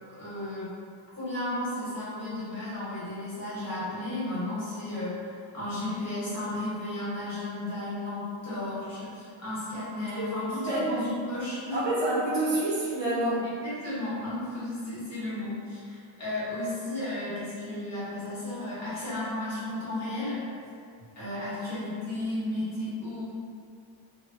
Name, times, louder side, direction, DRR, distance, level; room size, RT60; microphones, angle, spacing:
voice 1, 0.2-0.7 1.2-11.8 13.6-20.4 21.1-23.2, left 1 dB, 30° left, -12 dB, 1.3 m, -34 dB
voice 2, 10.2-11.0 11.7-13.4, right 1 dB, 60° right, -6 dB, 0.9 m, -28 dB
3.2 x 2.3 x 2.7 m, 2.3 s
wide cardioid pair, 170°, 50 cm